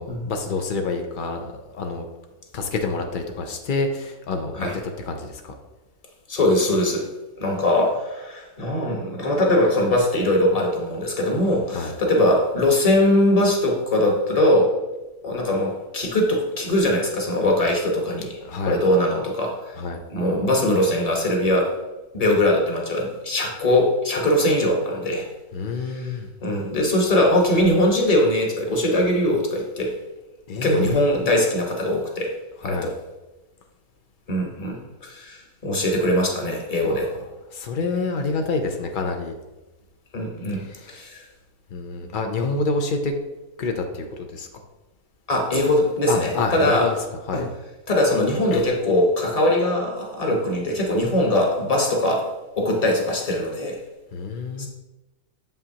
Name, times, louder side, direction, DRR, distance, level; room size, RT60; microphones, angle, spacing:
voice 1, 0.0-2.1 2.5-5.5 11.7-11.9 18.4-18.8 19.8-20.0 25.5-26.3 30.5-31.1 32.6-32.9 36.8-37.2 37.5-39.3 40.5-41.0 41.7-43.1 43.6-44.5 46.1-47.0 47.3-47.5 48.5-48.6 54.1-54.7, left 3 dB, 80° left, 4 dB, 0.4 m, -27 dB
voice 2, 6.3-7.0 7.4-14.7 15.2-18.4 18.6-19.7 20.1-21.7 22.1-25.3 25.8-26.1 26.4-30.0 30.5-32.3 32.6-32.9 34.3-37.1 40.1-40.6 40.9-41.2 45.3-46.9 47.3-47.4 47.9-53.8 54.6-54.7, left 1 dB, 25° left, 0 dB, 1.0 m, -21 dB
7.3 x 5.6 x 2.8 m, 1.1 s
omnidirectional pair, 1.6 m